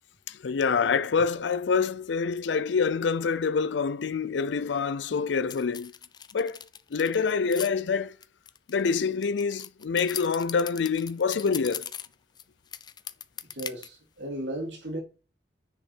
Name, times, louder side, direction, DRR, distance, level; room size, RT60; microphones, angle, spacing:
voice 1, 0.3-5.9 6.3-6.6 6.9-8.2 8.7-11.9, left 5 dB, 85° left, 0.5 m, -26 dB
sound 1, 5.5-7.7 8.2-12.4 12.7-13.9, left 8 dB, 25° left, 0.5 m, -39 dB
voice 2, 13.5-15.0, right 1 dB, 85° right, 3.2 m, -35 dB
9.9 x 5.6 x 4.5 m
head